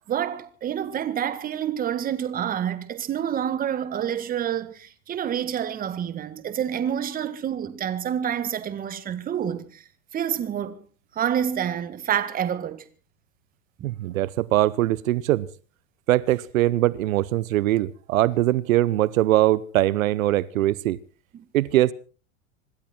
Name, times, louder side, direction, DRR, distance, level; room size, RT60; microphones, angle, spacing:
voice 1, 0.1-9.8 10.1-10.8 11.1-12.8 13.8-13.9 21.3-21.5, right 9 dB, 20° right, 1.7 m, -28 dB
voice 2, 13.8-15.5 16.1-21.0 21.5-21.9, right 15 dB, 80° right, 0.9 m, -22 dB
26.0 x 12.0 x 4.4 m
supercardioid pair, 140°, 40 cm